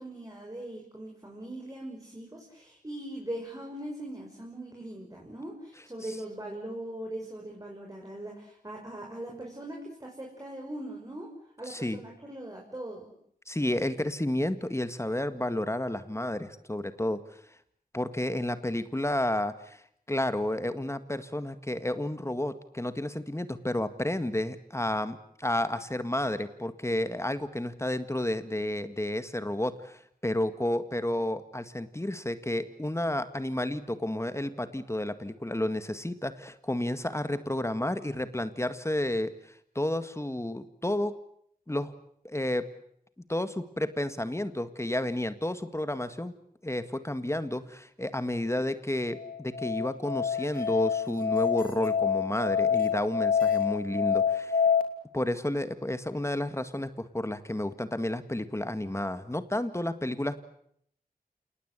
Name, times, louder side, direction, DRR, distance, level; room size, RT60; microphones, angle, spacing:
voice 1, 0.0-11.3 11.6-13.1, right 1 dB, 20° right, 0 dB, 6.0 m, -40 dB
voice 2, 11.7-12.0 13.5-17.2 17.9-19.8 20.1-39.3 39.8-41.1 41.7-41.9 42.2-42.7 43.3-46.3 46.6-54.6 55.1-60.4, left 1 dB, 15° left, 11 dB, 1.8 m, -31 dB
Musical instrument, 49.1-54.8, left 7 dB, 65° left, 2.9 m, -27 dB
28.5 x 19.5 x 8.2 m, 0.68 s
wide cardioid pair, 55°, 16 cm